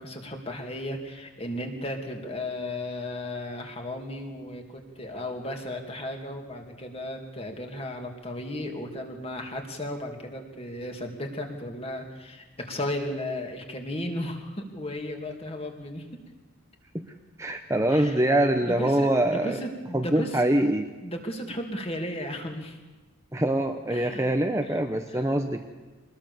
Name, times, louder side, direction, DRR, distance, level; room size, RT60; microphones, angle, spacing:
voice 1, 0.0-16.1 17.9-18.2 18.6-20.4 21.0-22.8 23.9-24.3 24.7-24.8 25.1-25.2, left 1 dB, 25° left, 3 dB, 2.7 m, -35 dB
voice 2, 17.4-19.6 19.9-20.9 23.3-25.6, right 1 dB, 15° right, 5 dB, 0.9 m, -24 dB
24.5 x 20.0 x 7.1 m, 1.2 s
head